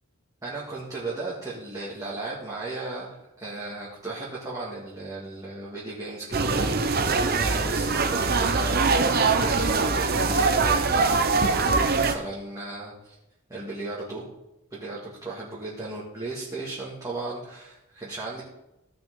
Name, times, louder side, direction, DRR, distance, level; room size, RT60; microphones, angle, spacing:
voice 1, 0.4-13.2 13.5-14.3 14.7-18.4, right 2 dB, 15° right, -7 dB, 2.0 m, -36 dB
sound 1, 6.3-12.2, right 4 dB, 45° right, 0.8 m, -23 dB
16.0 x 6.0 x 3.7 m, 0.91 s
head